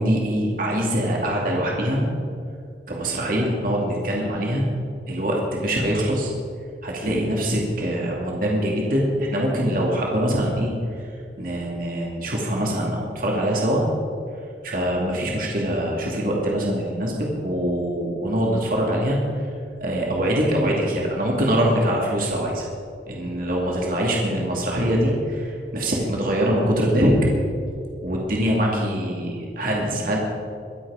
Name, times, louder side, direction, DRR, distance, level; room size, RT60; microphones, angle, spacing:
voice 1, 0.0-2.1 2.9-4.7 5.1-6.3 6.8-13.8 14.6-19.5 19.8-22.7 23.1-27.1 28.0-30.2, equal, 50° right, -2 dB, 2.5 m, -23 dB
23.5 x 8.1 x 5.0 m, 2.4 s
head